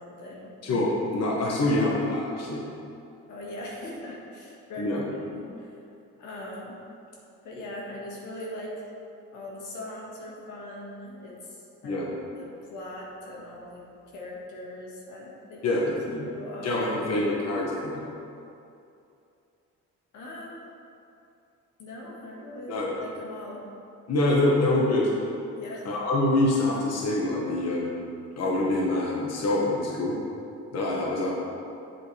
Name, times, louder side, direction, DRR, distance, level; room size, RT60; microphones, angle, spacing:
voice 1, 0.0-0.5 1.6-1.8 3.3-5.8 6.2-6.8 7.4-8.9 9.3-12.1 12.4-15.8 16.1-17.2 20.1-20.6 21.8-23.7 25.6-26.0, left 1 dB, 85° left, -4 dB, 1.8 m, -40 dB
voice 2, 0.6-2.6 4.8-5.0 11.8-12.1 15.6-16.2 16.6-18.0 22.7-22.9 24.1-25.1 25.8-28.1 28.4-30.2 30.7-31.3, left 2 dB, 55° left, -4 dB, 1.5 m, -25 dB
7.8 x 7.8 x 3.4 m, 2.7 s
cardioid pair, 90°, 30 cm